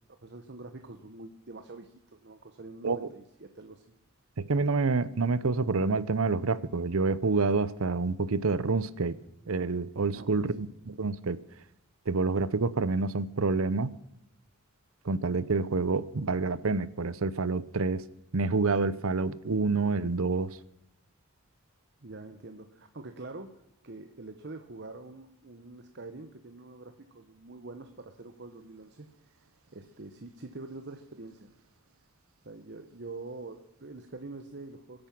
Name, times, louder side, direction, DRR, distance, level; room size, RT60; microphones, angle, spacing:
voice 1, 0.2-3.8 10.1-10.6 22.0-29.1 29.7-31.5 32.4-35.1, right 2 dB, 55° right, 7 dB, 1.0 m, -45 dB
voice 2, 4.5-9.2 9.5-11.4 12.1-13.9 15.0-18.0 18.3-20.6, right 4 dB, 85° right, 17 dB, 0.8 m, -28 dB
23.0 x 8.8 x 6.0 m, 0.86 s
head